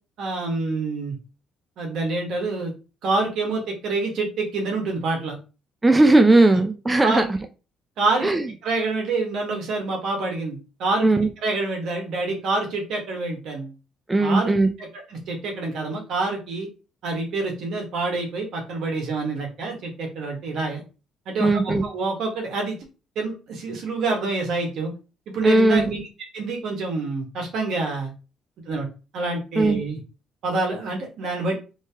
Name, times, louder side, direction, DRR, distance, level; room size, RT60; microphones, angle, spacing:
voice 1, 0.2-1.1 1.8-2.7 3.0-5.4 7.0-7.3 8.0-8.3 8.6-11.1 11.4-13.7 14.2-14.5 14.8-16.7 17.0-20.8 21.2-22.8 23.1-24.9 25.3-26.0 26.3-28.1 28.6-28.9 29.1-30.0 30.4-31.6, right 3 dB, 70° right, 2 dB, 1.4 m, -27 dB
voice 2, 5.8-7.4 8.2-8.5 11.0-11.3 14.1-14.7 21.4-21.8 25.4-25.9 29.6-29.8, right 2 dB, 15° right, 6 dB, 0.5 m, -17 dB
3.1 x 2.8 x 3.4 m, 0.32 s
supercardioid pair, 75°, 0 cm